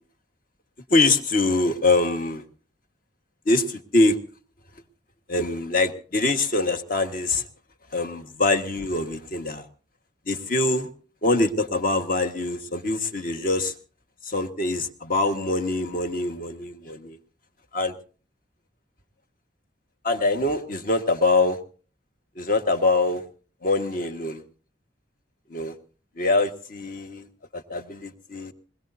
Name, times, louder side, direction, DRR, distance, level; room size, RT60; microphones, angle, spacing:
voice 1, 0.9-2.4 3.4-4.2 5.3-7.5 7.9-9.7 10.3-10.9 11.2-13.7 14.2-17.2 17.7-18.0 20.0-21.6 22.3-23.2 23.6-24.4 25.5-25.8 26.2-27.3 27.5-28.5, left 2 dB, 50° left, 8 dB, 1.6 m, -24 dB
22.0 x 21.5 x 2.7 m, 0.39 s
head